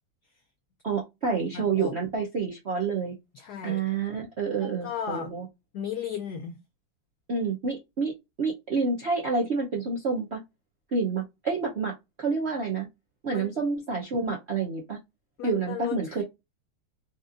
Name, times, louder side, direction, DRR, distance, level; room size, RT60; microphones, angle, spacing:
voice 1, 0.8-3.1 3.6-5.5 7.3-8.1 8.4-10.4 10.9-12.9 13.2-15.0 15.4-16.2, right 4 dB, 60° right, 0.6 m, -28 dB
voice 2, 1.4-1.9 3.3-3.8 4.5-5.3 5.7-6.6 13.3-13.5 15.4-16.2, left 8 dB, 85° left, 0.8 m, -35 dB
4.1 x 2.5 x 2.5 m
omnidirectional pair, 2.3 m